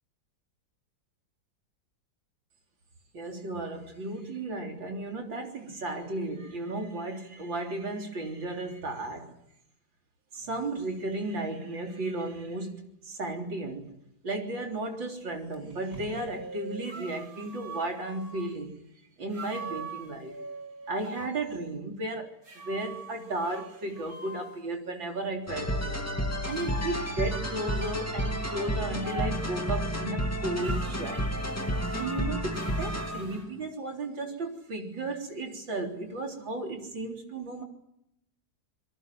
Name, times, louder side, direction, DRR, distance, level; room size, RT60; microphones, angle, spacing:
voice 1, 3.1-9.3 10.3-13.9 14.2-18.8 19.2-20.4 20.9-26.0 26.4-31.2 31.9-37.6, right 2 dB, 75° right, 3 dB, 4.3 m, -34 dB
sound 1, 15.5-18.5 19.3-21.3 22.4-24.6 26.5-28.6 29.0-29.8 30.6-33.4, right 3 dB, 50° right, 3.1 m, -42 dB
sound 2, 25.5-33.4, equal, 10° left, 2.1 m, -31 dB
25.5 x 22.5 x 7.6 m, 0.79 s
omnidirectional pair, 2.0 m